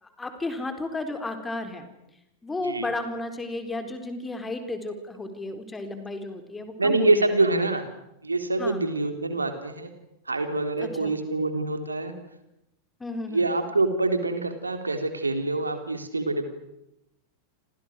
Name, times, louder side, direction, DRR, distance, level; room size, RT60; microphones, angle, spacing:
voice 1, 0.0-1.9 2.4-7.3 8.6-8.8 10.8-11.2 13.0-13.4, left 2 dB, 10° left, 7 dB, 4.2 m, -33 dB
voice 2, 6.8-7.8 8.2-9.9 10.3-12.1 13.3-16.5, right 2 dB, 80° right, 8 dB, 3.6 m, -25 dB
30.0 x 26.5 x 6.5 m, 0.86 s
figure-of-eight pair, 90°, 0 cm